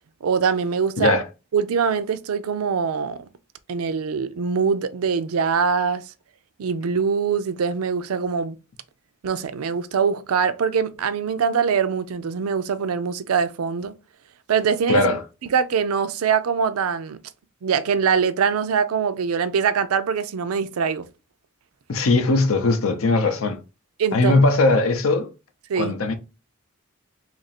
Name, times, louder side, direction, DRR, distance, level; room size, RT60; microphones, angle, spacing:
voice 1, 0.2-1.1 1.5-3.3 3.7-6.1 6.6-8.6 9.2-13.9 14.5-15.1 15.4-17.2 17.6-21.1 24.0-24.4 25.7-26.0, right 6 dB, 90° right, 0.4 m, -23 dB
voice 2, 14.9-15.2 21.9-23.6 24.1-25.3 25.8-26.2, left 2 dB, 75° left, 0.6 m, -19 dB
2.9 x 2.5 x 4.1 m
head